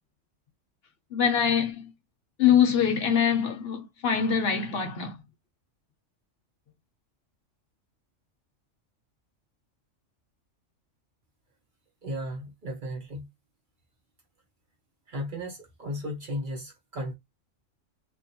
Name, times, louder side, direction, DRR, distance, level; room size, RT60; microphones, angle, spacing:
voice 1, 1.1-1.9 2.4-5.2, left 8 dB, 60° left, 0.8 m, -24 dB
voice 2, 12.0-13.3 15.1-17.1, equal, 45° right, 1.0 m, -35 dB
2.9 x 2.7 x 2.7 m
omnidirectional pair, 1.3 m